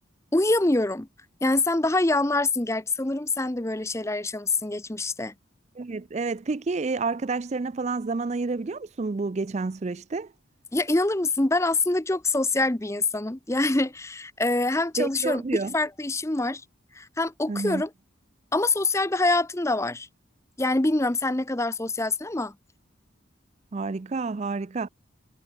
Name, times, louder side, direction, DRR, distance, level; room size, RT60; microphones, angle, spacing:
voice 1, 0.3-1.1 1.4-5.3 10.7-15.4 15.7-16.6 16.9-17.9 18.5-20.1 20.6-22.5, left 2 dB, 15° left, 0.7 m, -25 dB
voice 2, 5.8-10.3 15.0-15.7 17.5-17.8 23.7-24.9, right 3 dB, 35° right, 0.4 m, -29 dB
head